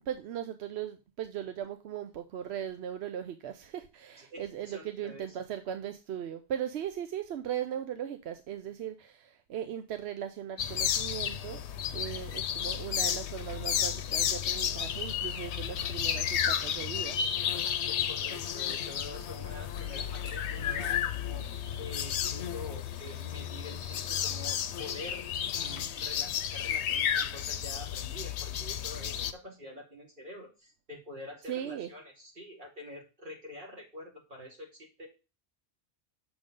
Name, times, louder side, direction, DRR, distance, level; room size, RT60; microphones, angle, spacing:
voice 1, 0.0-11.6 11.9-17.2 31.5-31.9, right 10 dB, 75° right, 8 dB, 0.9 m, -38 dB
voice 2, 4.2-5.3 17.9-25.3 25.5-35.1, left 1 dB, 45° right, -1 dB, 2.6 m, -46 dB
sound 1, 10.6-29.3, left 9 dB, 80° left, 0.9 m, -32 dB
7.0 x 3.8 x 5.1 m, 0.30 s
omnidirectional pair, 1.1 m